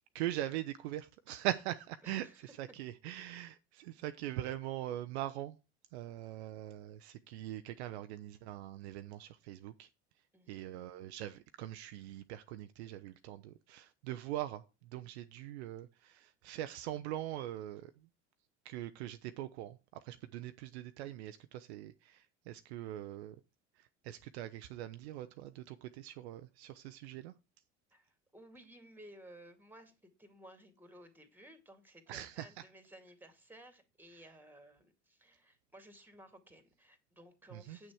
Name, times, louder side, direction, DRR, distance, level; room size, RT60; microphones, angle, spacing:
voice 1, 0.1-2.3 2.6-5.6 5.9-9.9 10.5-17.9 18.6-23.4 23.8-27.3 32.1-32.5 37.5-37.8, right 13 dB, 65° right, 0.6 m, -42 dB
voice 2, 2.0-2.5 10.3-10.8 27.9-29.9 30.2-37.9, right 1 dB, 5° right, 2.1 m, -57 dB
8.6 x 6.3 x 4.7 m
figure-of-eight pair, 60°, 36 cm